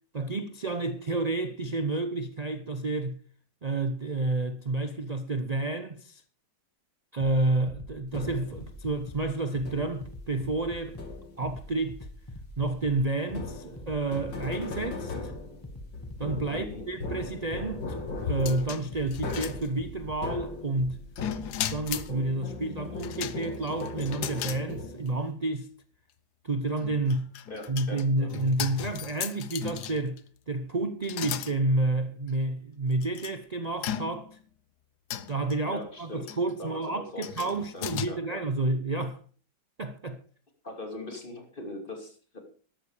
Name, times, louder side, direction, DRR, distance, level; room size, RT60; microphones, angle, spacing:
voice 1, 0.1-3.2 3.6-6.2 7.1-11.0 11.4-12.1 12.6-15.3 16.2-21.0 21.7-25.7 26.4-27.3 27.7-34.4 35.3-39.2 39.8-40.2, right 2 dB, 45° right, 0.5 m, -30 dB
sound 1, 7.7-22.2, left 1 dB, 10° left, 1.5 m, -44 dB
sound 2, 8.1-8.7 9.7-10.1 11.0-11.5 13.3-21.8 22.1-25.2, left 3 dB, 85° left, 3.5 m, -39 dB
voice 2, 16.5-16.9 27.5-28.4 35.6-36.3 36.6-38.4 40.6-42.4, left 2 dB, 30° left, 3.0 m, -41 dB
sound 3, 18.2-20.1 21.2-22.1 23.0-24.6 25.1-25.2 26.7-30.2 31.0-31.5 32.3-32.4 33.0-33.3 33.8-34.4 35.1-35.5 36.3-36.5 37.2-38.1, left 10 dB, 65° left, 1.3 m, -36 dB
13.0 x 12.5 x 5.0 m
omnidirectional pair, 2.0 m